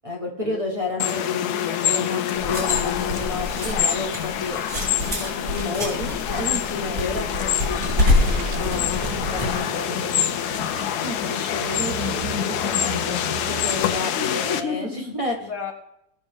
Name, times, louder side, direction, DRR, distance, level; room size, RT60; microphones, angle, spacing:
voice 1, 0.0-4.7 5.0-9.0 10.7-15.4, left 2 dB, 20° right, -2 dB, 1.5 m, -31 dB
sound 1, 1.0-14.6, left 10 dB, 75° left, 1.2 m, -26 dB
sound 2, 2.3-9.6, left 2 dB, 60° right, 4.4 m, -26 dB
sound 3, 8.1-14.0, right 9 dB, 80° right, 1.3 m, -37 dB
voice 2, 9.3-10.2 14.1-15.8, left 5 dB, 55° left, 3 dB, 1.2 m, -33 dB
17.0 x 6.6 x 3.6 m, 0.78 s
omnidirectional pair, 1.7 m